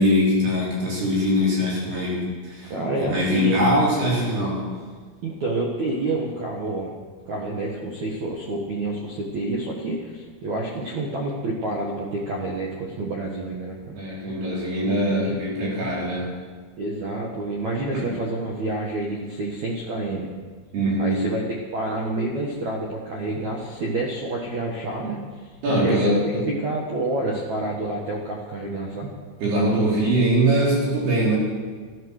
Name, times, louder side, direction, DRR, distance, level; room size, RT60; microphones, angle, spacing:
voice 1, 0.0-2.7 3.0-4.7 13.9-16.3 17.9-18.1 20.7-21.3 25.6-26.5 29.4-31.4, equal, 55° right, -5 dB, 5.6 m, -22 dB
voice 2, 2.6-3.7 5.2-6.9 7.3-13.9 14.7-15.4 16.8-20.3 21.0-21.4 21.7-25.2 25.8-26.2 26.5-29.1, right 2 dB, 75° right, -2 dB, 1.6 m, -28 dB
14.5 x 12.5 x 6.5 m, 1.5 s
omnidirectional pair, 5.8 m